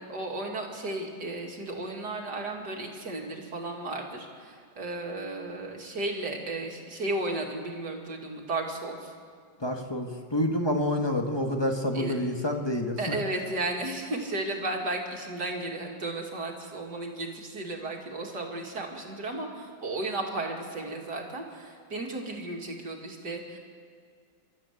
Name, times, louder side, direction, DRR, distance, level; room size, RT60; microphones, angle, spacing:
voice 1, 0.1-9.1 11.9-12.1 13.0-23.6, right 2 dB, 55° right, 0 dB, 3.0 m, -34 dB
voice 2, 9.6-13.1, left 1 dB, 15° left, 3 dB, 1.4 m, -28 dB
29.0 x 13.0 x 8.4 m, 2.1 s
omnidirectional pair, 2.1 m